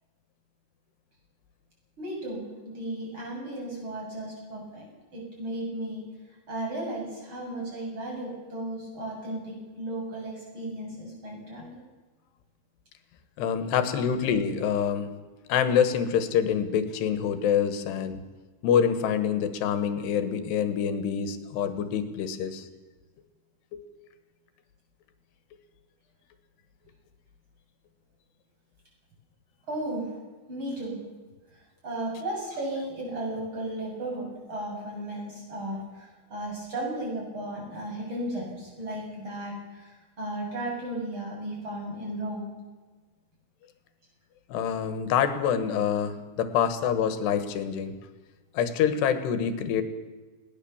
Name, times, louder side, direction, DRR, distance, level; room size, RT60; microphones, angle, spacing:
voice 1, 2.0-4.9 5.1-6.0 6.5-11.8 13.9-14.0 29.7-30.2 30.5-31.0 31.8-42.5, right 1 dB, 30° right, -2 dB, 8.1 m, -35 dB
voice 2, 13.4-15.1 15.5-18.2 18.6-22.7 23.7-23.8 44.5-47.9 48.6-49.8, left 8 dB, 85° left, 10 dB, 3.7 m, -26 dB
21.0 x 18.0 x 7.3 m, 1.3 s
omnidirectional pair, 4.7 m